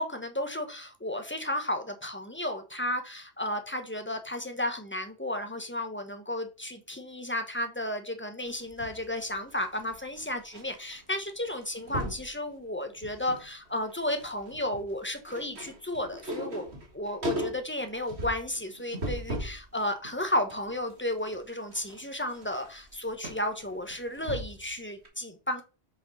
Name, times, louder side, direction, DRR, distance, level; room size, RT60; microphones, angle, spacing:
voice 1, 0.0-16.6 16.9-25.6, left 1 dB, 10° left, 6 dB, 1.2 m, -33 dB
sound 1, 8.5-10.6 10.9-11.2 11.4-12.3 12.8-13.5 13.8-19.6 20.0-24.7 25.0-25.1, equal, 75° right, 2.2 m, -38 dB
6.4 x 5.5 x 5.6 m, 0.32 s
omnidirectional pair, 1.1 m